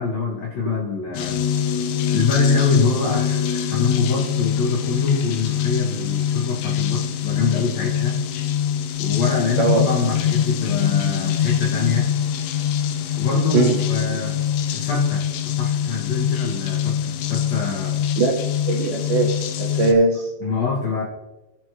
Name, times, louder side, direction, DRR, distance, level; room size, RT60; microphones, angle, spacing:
voice 1, 0.0-1.4 2.1-8.2 9.0-12.1 13.2-14.4 14.7-15.3 15.6-18.1 20.4-21.0, left 4 dB, 55° left, -3 dB, 2.0 m, -24 dB
sound 1, 1.1-19.9, left 9 dB, 80° left, 3.0 m, -23 dB
voice 2, 9.6-9.9 13.5-13.8 18.2-20.3, right 3 dB, 70° right, -1 dB, 2.0 m, -20 dB
19.0 x 6.4 x 3.0 m, 1.0 s
omnidirectional pair, 4.9 m